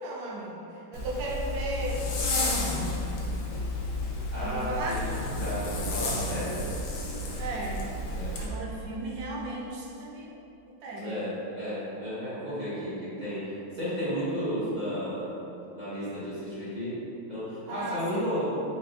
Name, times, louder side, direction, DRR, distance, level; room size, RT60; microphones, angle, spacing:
voice 1, 0.0-2.9 4.4-5.0 7.4-7.9 8.4-10.4 10.7-11.3 17.7-18.4, right 2 dB, 70° right, -3 dB, 1.3 m, -36 dB
Zipper (clothing), 0.9-8.5, left 2 dB, 75° left, 0.8 m, -31 dB
voice 2, 4.3-5.0 5.4-6.7 8.1-8.3 11.0-15.3 15.7-17.0 17.3-18.4, equal, 25° right, -13 dB, 1.2 m, -33 dB
4.2 x 4.2 x 2.4 m, 2.9 s
omnidirectional pair, 2.3 m